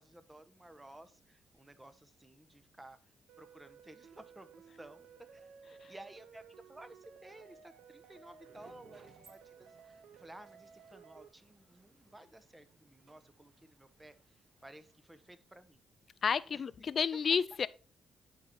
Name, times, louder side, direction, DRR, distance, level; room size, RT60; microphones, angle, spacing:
voice 1, 0.0-3.0 3.4-15.9 16.5-16.6 17.1-17.2, right 1 dB, 15° right, 1.1 m, -55 dB
sound 1, 3.3-11.3, right 6 dB, 90° right, 0.8 m, -57 dB
sound 2, 8.0-15.3, right 4 dB, 55° right, 1.5 m, -66 dB
voice 2, 16.2-17.7, left 6 dB, 55° left, 0.4 m, -31 dB
10.5 x 4.6 x 4.3 m
cardioid pair, 75°, 0 cm